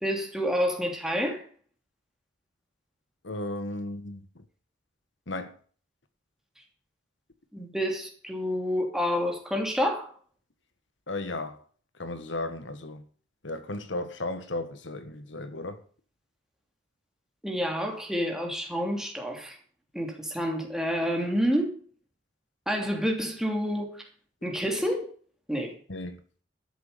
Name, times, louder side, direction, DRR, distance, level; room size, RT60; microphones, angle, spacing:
voice 1, 0.0-1.4 7.5-10.1 17.4-19.6 19.9-21.8 22.7-24.0 24.4-25.1 25.5-25.7, equal, 5° right, 2.9 m, -28 dB
voice 2, 3.2-4.4 5.3-5.6 11.1-11.6 12.0-13.0 13.4-15.8 25.9-26.2, left 2 dB, 75° left, 1.6 m, -35 dB
12.5 x 8.1 x 6.9 m
head